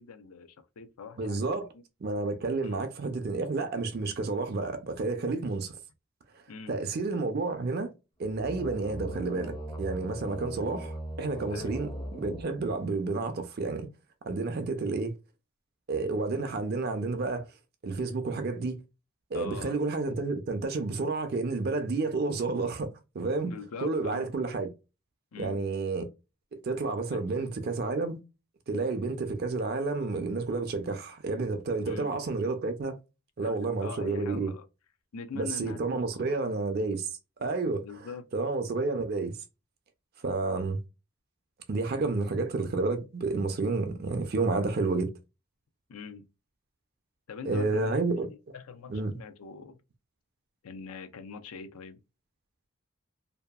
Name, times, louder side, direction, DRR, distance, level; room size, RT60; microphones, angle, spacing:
voice 1, 0.0-1.5 1.7-1.8 2.6-2.8 6.5-6.8 11.5-11.8 19.3-19.8 23.5-24.3 25.3-25.6 27.1-27.5 31.9-32.1 33.4-34.7 35.1-36.4 37.8-38.2 42.2-42.3 45.9-46.3 47.3-49.8 50.6-52.0, left 5 dB, 85° left, 0.5 m, -43 dB
voice 2, 1.2-1.7 2.0-5.7 6.7-7.9 8.2-13.9 14.2-15.1 15.9-17.5 17.8-18.8 19.3-23.5 23.8-24.7 25.4-26.1 26.5-28.2 28.7-33.0 33.4-34.5 35.3-37.1 37.4-37.8 38.3-39.4 40.2-40.8 41.7-45.1 47.4-48.3 48.9-49.2, right 3 dB, 45° right, 0.4 m, -30 dB
sound 1, 8.3-13.0, right 1 dB, 20° left, 0.5 m, -39 dB
2.7 x 2.3 x 2.2 m
head